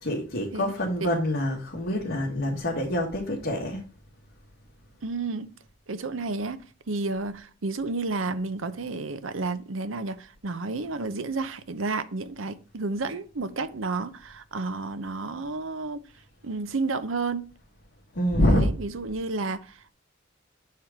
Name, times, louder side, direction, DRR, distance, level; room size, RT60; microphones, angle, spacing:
voice 1, 0.0-3.8 18.1-18.7, left 1 dB, 55° left, 1.6 m, -26 dB
voice 2, 5.0-5.5 5.9-6.6 6.9-16.0 16.4-17.4 18.4-19.9, right 3 dB, 80° right, 0.8 m, -31 dB
7.6 x 4.4 x 4.9 m
head